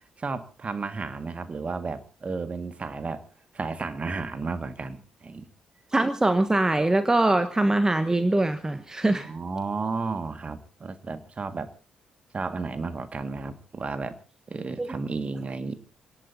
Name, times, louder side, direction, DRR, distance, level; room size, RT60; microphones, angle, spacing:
voice 1, 0.2-3.2 3.5-5.5 9.1-11.7 12.3-14.1 14.5-15.8, right 4 dB, 35° right, 9 dB, 1.9 m, -33 dB
voice 2, 5.9-9.3 14.8-14.9, right 2 dB, 15° right, 10 dB, 1.2 m, -23 dB
28.5 x 18.0 x 2.8 m, 0.36 s
figure-of-eight pair, 40°, 4 cm